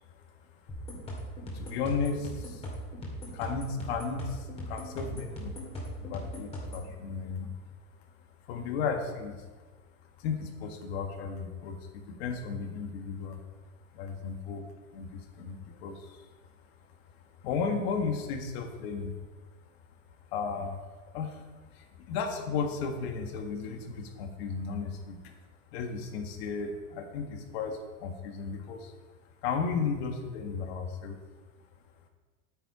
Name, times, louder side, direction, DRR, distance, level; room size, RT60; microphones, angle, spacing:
sound 1, 0.7-6.9, equal, 15° left, 2.4 m, -39 dB
voice 1, 1.5-2.7 3.2-5.5 6.0-7.5 8.4-9.4 10.2-13.4 13.9-14.6 14.9-16.3 17.4-19.1 20.3-20.8 21.1-25.3 25.7-28.9 29.4-31.2, left 5 dB, 50° left, 4 dB, 1.8 m, -34 dB
9.2 x 9.1 x 4.9 m, 1.3 s
supercardioid pair, 150°, 40 cm